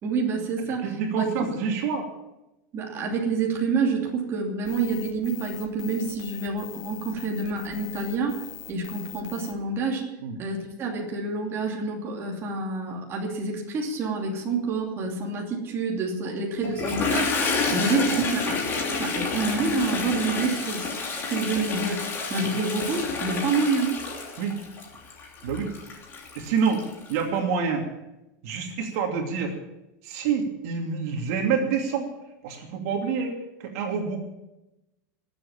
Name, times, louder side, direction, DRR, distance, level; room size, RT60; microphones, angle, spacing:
voice 1, 0.0-1.5 2.7-8.4 8.6-10.1 10.4-18.6 19.0-20.9 21.2-24.0, right 4 dB, 25° right, -1 dB, 2.8 m, -28 dB
voice 2, 0.8-2.1 10.2-10.4 17.7-18.2 24.4-24.6 25.4-25.7 26.4-26.8 27.1-27.8 28.4-29.5 30.0-32.1 32.4-34.2, right 6 dB, 60° right, 2 dB, 2.7 m, -27 dB
sound 1, 4.6-9.5, left 11 dB, 75° left, 3.1 m, -42 dB
Toilet flush, 16.6-27.2, left 4 dB, 25° left, 3.1 m, -29 dB
20.0 x 8.1 x 7.3 m, 0.96 s
supercardioid pair, 155°, 9 cm